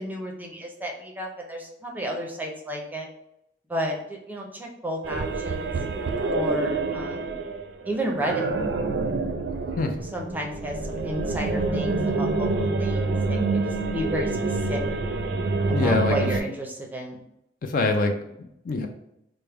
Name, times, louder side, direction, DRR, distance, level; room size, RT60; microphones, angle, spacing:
voice 1, 0.0-3.1 3.7-5.7 6.3-7.4 7.9-8.5 10.1-15.0 15.7-17.2, equal, 10° right, 0 dB, 0.6 m, -32 dB
sound 1, 5.0-16.4, right 3 dB, 70° right, 0.4 m, -27 dB
voice 2, 15.7-16.2 17.6-18.9, left 3 dB, 50° left, 6 dB, 0.4 m, -25 dB
4.4 x 2.0 x 3.4 m, 0.80 s
head